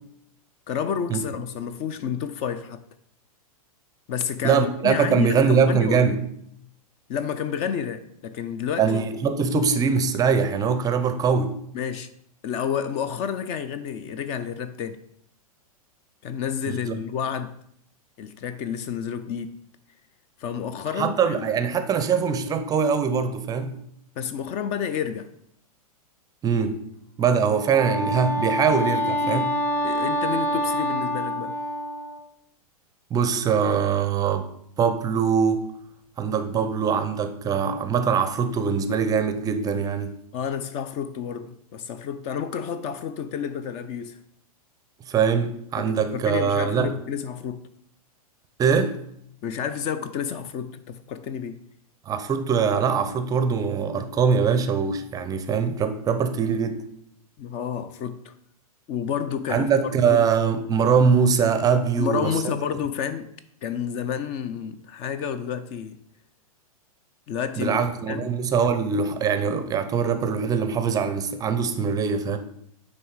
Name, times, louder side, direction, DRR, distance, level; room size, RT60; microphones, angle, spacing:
voice 1, 0.7-2.8 4.1-6.2 7.1-9.0 11.7-12.1 12.4-15.0 16.2-17.6 18.2-19.5 20.4-21.5 24.2-25.3 29.2-29.5 29.8-31.6 40.3-44.2 45.8-47.6 49.4-51.6 57.4-58.3 58.9-59.7 60.1-60.3 62.0-63.3 63.6-66.0 67.3-67.8 68.1-68.3, left 8 dB, 35° left, 0.5 m, -30 dB
voice 2, 4.4-6.2 8.8-11.6 16.7-17.0 21.0-23.7 26.4-26.8 27.2-29.5 33.1-34.5 34.8-35.6 36.2-40.1 45.1-46.9 48.6-49.0 52.1-56.8 59.5-62.4 67.6-72.4, right 6 dB, 20° right, 0.5 m, -22 dB
Wind instrument woodwind instrument, 27.6-32.2, equal, 10° left, 0.9 m, -26 dB
9.1 x 3.2 x 4.7 m
hypercardioid pair, 120°, 19 cm